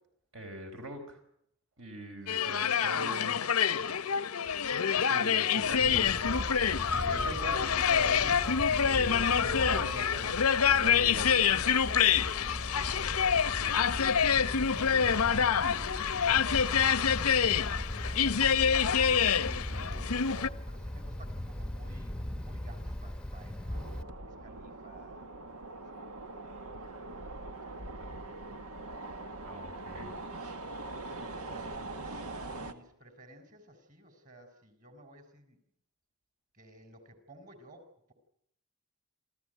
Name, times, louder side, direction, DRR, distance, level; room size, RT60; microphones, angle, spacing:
voice 1, 0.3-1.2 1.8-3.4 4.9-6.5 6.9-8.3 8.8-11.4 14.7-15.3 15.7-15.9 19.7-20.1 29.4-30.1 31.1-31.2, right 1 dB, 65° right, 4 dB, 4.4 m, -43 dB
sound 1, 2.3-20.5, left 7 dB, 85° left, 0.8 m, -27 dB
Wind, 5.6-24.0, left 1 dB, 5° left, 0.8 m, -39 dB
voice 2, 14.7-19.2 20.2-25.3 25.6-25.9 26.2-26.6 27.0-28.4 31.2-35.6 36.5-38.1, right 2 dB, 35° right, 8 dB, 4.4 m, -54 dB
sound 2, 23.7-32.7, right 2 dB, 90° right, 1.7 m, -42 dB
28.0 x 14.5 x 9.1 m, 0.74 s
head